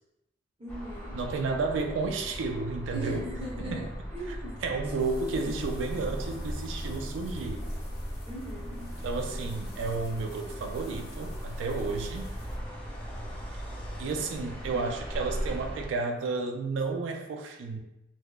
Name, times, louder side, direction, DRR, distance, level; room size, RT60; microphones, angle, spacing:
voice 1, 0.6-1.1 2.9-3.9 4.1-4.5 5.3-5.5 8.2-8.8, right 1 dB, 30° right, -7 dB, 0.7 m, -39 dB
sound 1, 0.7-15.9, equal, 5° left, 0.4 m, -38 dB
voice 2, 1.1-3.2 3.7-3.9 4.3-7.6 9.0-12.3 14.0-17.8, right 4 dB, 80° right, 4 dB, 0.3 m, -32 dB
sound 2, 5.0-12.6, left 3 dB, 60° left, 0.6 m, -54 dB
2.8 x 2.2 x 2.2 m, 0.92 s
head